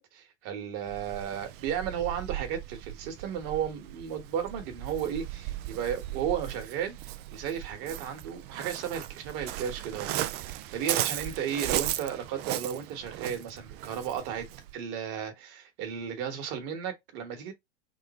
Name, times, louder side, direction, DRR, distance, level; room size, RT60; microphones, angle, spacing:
voice 1, 0.0-14.5 14.7-17.5, right 8 dB, 55° right, 1.5 m, -34 dB
Waves surf, 0.9-14.7, right 14 dB, 35° right, 0.4 m, -37 dB
3.7 x 2.1 x 4.2 m
supercardioid pair, 125°, 30 cm